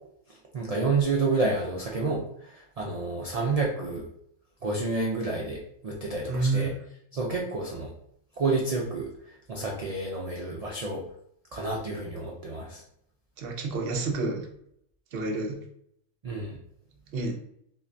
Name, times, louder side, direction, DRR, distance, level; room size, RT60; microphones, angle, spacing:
voice 1, 0.5-4.1 4.6-6.7 7.1-7.9 8.4-11.0 11.5-12.8 16.2-16.6, right 3 dB, 75° right, -1 dB, 0.3 m, -29 dB
voice 2, 6.3-6.7 13.4-14.4 15.1-15.6 17.1-17.3, right 3 dB, 55° right, 2 dB, 0.8 m, -28 dB
5.7 x 2.2 x 2.5 m, 0.71 s
omnidirectional pair, 1.4 m